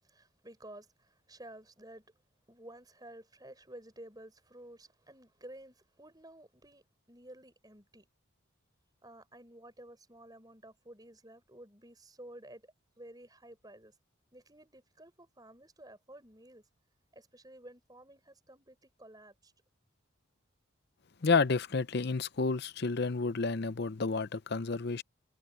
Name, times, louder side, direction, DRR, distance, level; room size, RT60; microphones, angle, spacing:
voice 1, 0.0-2.0 2.5-6.8 7.1-8.1 9.0-13.9 14.3-16.6 17.1-19.5, right 1 dB, 20° right, 6.9 m, -53 dB
voice 2, 21.2-25.0, left 4 dB, 50° left, 0.6 m, -30 dB
head